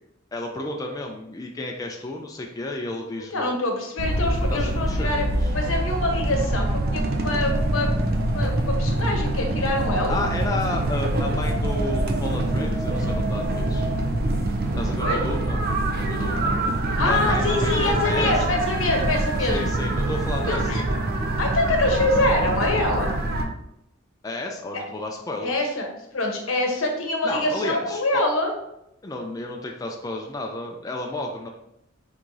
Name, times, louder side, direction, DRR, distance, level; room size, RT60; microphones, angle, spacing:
voice 1, 0.3-3.5 4.5-5.5 10.1-13.9 14.8-15.6 16.1-16.6 17.1-18.6 19.5-20.9 24.2-25.7 27.2-28.2 29.0-31.5, left 2 dB, 15° left, 1 dB, 0.4 m, -32 dB
voice 2, 3.3-5.2 5.5-7.9 8.3-10.3 15.0-15.2 16.1-19.7 20.5-21.0 21.4-23.2 24.7-24.9 25.4-25.9 26.1-28.5, left 2 dB, 75° left, 2 dB, 0.9 m, -25 dB
sound 1, 4.0-23.4, right 1 dB, 50° right, 0.5 m, -25 dB
4.7 x 3.6 x 2.6 m, 0.82 s
head